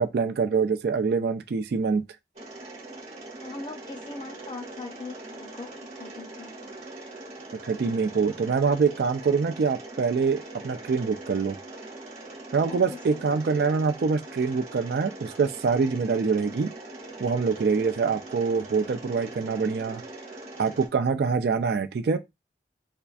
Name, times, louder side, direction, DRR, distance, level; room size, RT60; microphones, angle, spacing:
voice 1, 0.0-2.0 7.6-11.6 12.5-16.7 17.2-20.0 20.6-22.2, right 5 dB, 65° right, 0.3 m, -25 dB
Mechanisms, 2.4-20.9, right 2 dB, 40° right, 1.1 m, -42 dB
voice 2, 3.4-6.7 12.7-13.3, left 3 dB, 25° left, 0.6 m, -41 dB
4.3 x 2.4 x 2.5 m
head